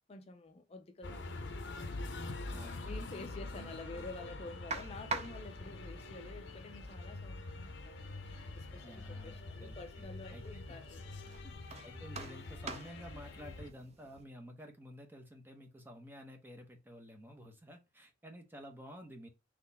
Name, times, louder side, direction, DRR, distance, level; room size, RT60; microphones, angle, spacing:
voice 1, 0.1-1.7 2.5-11.8, left 3 dB, 35° left, 0.5 m, -50 dB
sound 1, 1.0-13.7, left 2 dB, 70° left, 0.7 m, -45 dB
sound 2, 2.1-11.6, equal, 70° right, 2.4 m, -61 dB
voice 2, 2.5-2.9 4.0-4.1 8.8-10.6 11.8-19.3, equal, 10° right, 0.9 m, -51 dB
sound 3, 4.7-14.2, right 4 dB, 35° right, 0.6 m, -48 dB
4.1 x 3.1 x 4.1 m
head